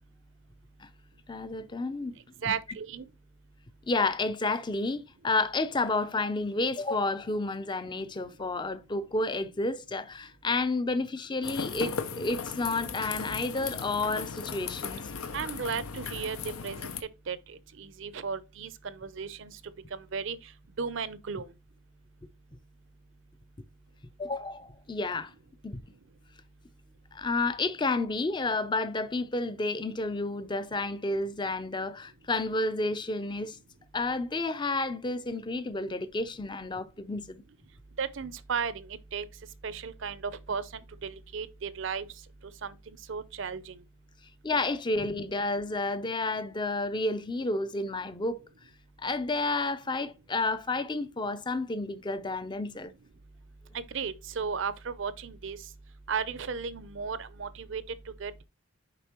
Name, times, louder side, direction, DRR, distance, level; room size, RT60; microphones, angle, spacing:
voice 1, 1.3-2.1 2.4-2.5 3.9-15.1 24.2-25.3 25.6-25.8 27.1-33.6 33.9-37.4 44.4-48.5 49.0-52.9, left 2 dB, 20° left, 0.5 m, -31 dB
voice 2, 2.4-3.1 15.3-16.4 16.6-16.9 17.3-19.6 19.9-20.4 20.8-21.5 38.0-39.3 39.6-42.1 42.6-42.8 43.1-43.8 53.7-55.6 56.1-57.8 58.2-58.4, right 6 dB, 60° right, 0.6 m, -35 dB
sound 1, 11.4-17.0, left 5 dB, 90° left, 0.7 m, -37 dB
6.8 x 5.1 x 2.9 m
head